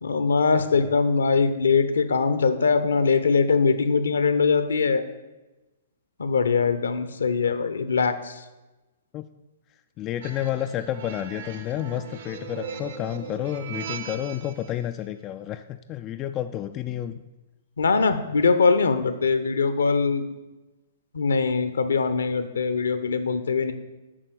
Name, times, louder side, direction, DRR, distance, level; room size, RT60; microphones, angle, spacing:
voice 1, 0.0-5.0 6.2-8.4 17.8-20.2 21.1-23.7, left 5 dB, 70° left, 11 dB, 0.8 m, -22 dB
voice 2, 0.6-0.9 9.1-9.3 10.0-17.2, left 11 dB, 25° left, 9 dB, 0.3 m, -30 dB
sound 1, 10.2-14.7, right 6 dB, 55° right, 1.1 m, -38 dB
8.7 x 5.6 x 6.8 m, 1.1 s
figure-of-eight pair, 115°, 0 cm